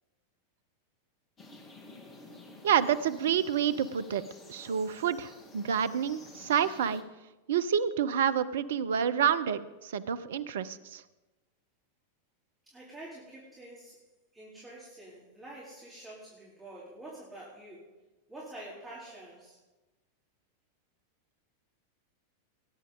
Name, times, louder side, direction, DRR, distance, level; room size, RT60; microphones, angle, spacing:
sound 1, 1.4-7.0, left 2 dB, 25° left, 2.1 m, -52 dB
voice 1, 2.6-4.2 4.5-7.0 7.5-11.0, right 8 dB, 60° right, 14 dB, 0.6 m, -28 dB
voice 2, 12.6-17.9 18.3-19.6, right 1 dB, 10° right, -7 dB, 3.9 m, -47 dB
19.0 x 10.5 x 4.0 m, 1.1 s
figure-of-eight pair, 90°, 0 cm